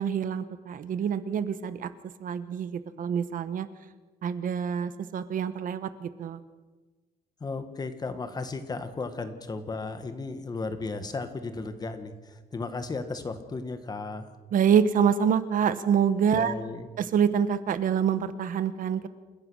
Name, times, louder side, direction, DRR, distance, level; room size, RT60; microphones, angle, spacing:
voice 1, 0.0-1.9 2.2-3.7 4.2-6.4 14.5-16.5 17.0-19.1, right 8 dB, 55° right, 13 dB, 1.1 m, -26 dB
voice 2, 7.4-14.3 16.3-16.9, left 3 dB, 25° left, 9 dB, 1.6 m, -35 dB
28.5 x 16.0 x 6.4 m, 1.3 s
cardioid pair, 170°, 16 cm